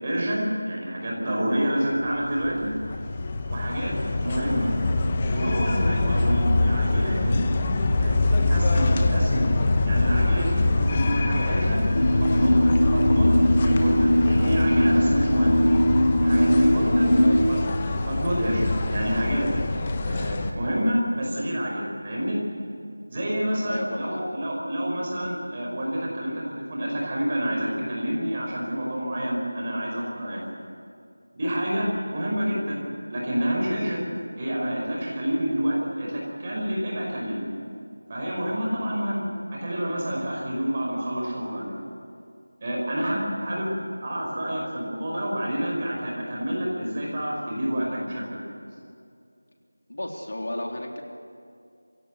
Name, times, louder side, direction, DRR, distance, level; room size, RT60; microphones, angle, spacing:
voice 1, 0.0-2.7 3.5-4.7 5.3-7.4 8.0-11.8 12.2-13.3 13.6-15.6 16.2-17.1 17.5-17.6 18.1-19.5 20.0-22.4 23.1-26.4 26.7-30.4 31.3-32.8 33.1-34.1 34.4-37.5 38.1-41.7 42.6-43.7 44.0-48.2, equal, 25° right, -3 dB, 5.3 m, -28 dB
sound 1, 2.1-20.5, left 2 dB, 20° left, 1.0 m, -24 dB
sound 2, 11.9-17.4, equal, 85° left, 5.3 m, -20 dB
voice 2, 23.7-24.2 49.9-51.0, left 1 dB, 65° left, 1 dB, 3.5 m, -33 dB
28.0 x 16.5 x 8.3 m, 2.4 s
figure-of-eight pair, 175°, 0 cm